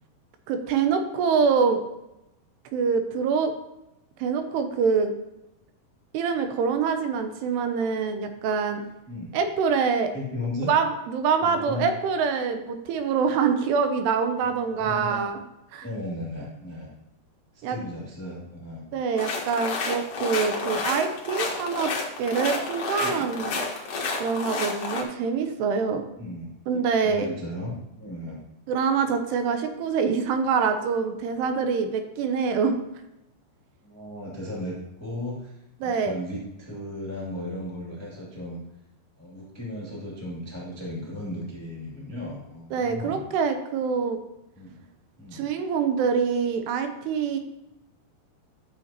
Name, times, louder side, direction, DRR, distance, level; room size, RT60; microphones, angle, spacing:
voice 1, 0.5-1.8 2.7-3.5 4.2-5.1 6.1-8.8 9.3-10.1 10.6-15.4 15.7-15.8 17.6-17.8 18.9-21.9 22.2-23.6 24.2-26.0 26.7-27.3 28.7-32.7 35.8-36.2 42.7-44.2 45.3-47.4, right 5 dB, 80° right, 7 dB, 2.8 m, -25 dB
voice 2, 10.1-10.7 11.4-11.9 14.4-15.2 15.8-16.9 17.5-18.8 23.0-23.5 26.2-26.5 27.0-27.7 28.0-28.4 33.8-38.6 39.2-43.2 44.5-44.8 45.2-45.5, left 1 dB, 15° left, -5 dB, 0.6 m, -36 dB
sound 1, 19.2-25.0, left 3 dB, 85° left, 1.3 m, -30 dB
12.5 x 6.6 x 2.9 m, 0.89 s
omnidirectional pair, 4.9 m